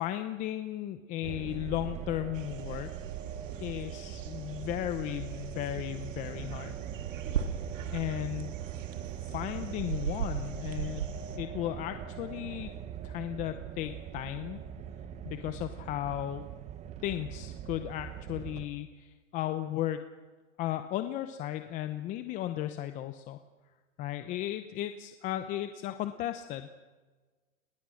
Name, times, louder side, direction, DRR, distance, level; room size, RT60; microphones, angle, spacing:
voice 1, 0.0-2.9 3.6-6.7 7.9-8.5 9.3-11.0 11.4-12.7 13.0-14.6 15.2-16.4 17.0-20.0 20.6-23.4 24.0-26.7, left 13 dB, 20° left, 9 dB, 0.8 m, -35 dB
sound 1, 1.2-18.7, right 10 dB, 15° right, 1.0 m, -41 dB
sound 2, 2.3-11.4, right 8 dB, 70° right, 2.8 m, -39 dB
29.0 x 20.5 x 6.4 m, 1.3 s
hypercardioid pair, 145°, 40 cm